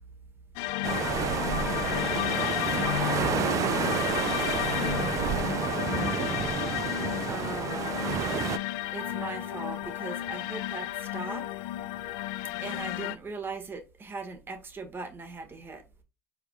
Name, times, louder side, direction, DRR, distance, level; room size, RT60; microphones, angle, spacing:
sound 1, 0.6-13.2, left 15 dB, 75° left, 0.4 m, -32 dB
voice 1, 0.7-4.3 4.6-7.7, left 2 dB, 20° left, 1.2 m, -50 dB
sound 2, 0.8-8.6, right 10 dB, 50° right, 0.4 m, -30 dB
voice 2, 7.3-11.8 12.6-15.8, right 3 dB, 30° right, 1.6 m, -40 dB
sound 3, 9.0-11.8, right 3 dB, ahead, 0.9 m, -51 dB
4.9 x 4.3 x 2.3 m
supercardioid pair, 80°, 7 cm